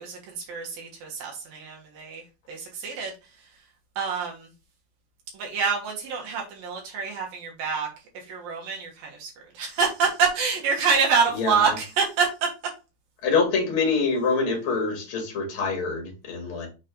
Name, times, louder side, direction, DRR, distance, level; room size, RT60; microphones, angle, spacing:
voice 1, 0.0-2.2 2.5-3.1 4.0-4.5 5.3-7.9 8.3-9.3 9.5-12.5, right 5 dB, 75° right, -1 dB, 3.2 m, -26 dB
voice 2, 11.3-11.7 13.2-16.7, left 4 dB, 45° left, 2 dB, 2.3 m, -25 dB
6.5 x 4.2 x 3.7 m, 0.29 s
omnidirectional pair, 4.1 m